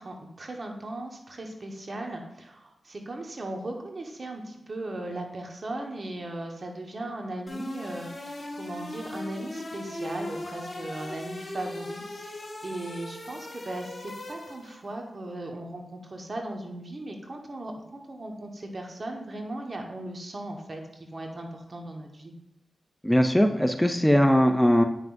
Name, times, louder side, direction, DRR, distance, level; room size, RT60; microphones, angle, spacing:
voice 1, 0.0-20.8 21.1-22.3, right 1 dB, 55° right, 2 dB, 1.3 m, -37 dB
sound 1, 7.5-14.9, left 1 dB, 45° left, 1.6 m, -39 dB
voice 2, 23.0-24.8, equal, 5° left, 6 dB, 0.5 m, -20 dB
8.8 x 5.9 x 2.6 m, 0.84 s
cardioid pair, 45°, 0 cm